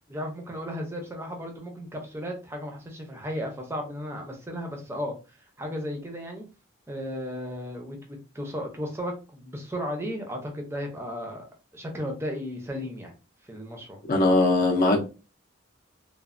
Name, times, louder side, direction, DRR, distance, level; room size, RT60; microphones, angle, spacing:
voice 1, 0.1-5.1 5.6-6.4 6.9-11.5 11.7-13.1 13.5-14.0, equal, 10° right, 0.5 m, -34 dB
voice 2, 14.1-15.0, left 2 dB, 40° left, 0.5 m, -20 dB
3.1 x 2.1 x 2.4 m
head